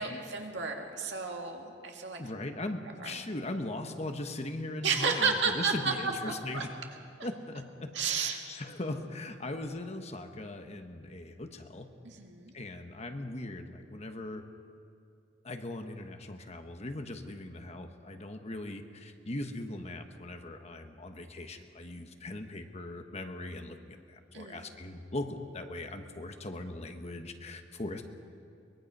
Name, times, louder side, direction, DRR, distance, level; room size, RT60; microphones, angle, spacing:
voice 1, 0.0-2.2 3.0-3.1 4.8-5.9 6.5-6.7 7.9-8.4 12.0-12.5 24.3-24.6, right 5 dB, 70° right, 2 dB, 2.3 m, -31 dB
voice 2, 2.2-6.7 7.2-11.9 12.5-14.4 15.4-28.0, left 2 dB, 35° left, 6 dB, 1.1 m, -39 dB
23.5 x 21.0 x 5.4 m, 2.6 s
head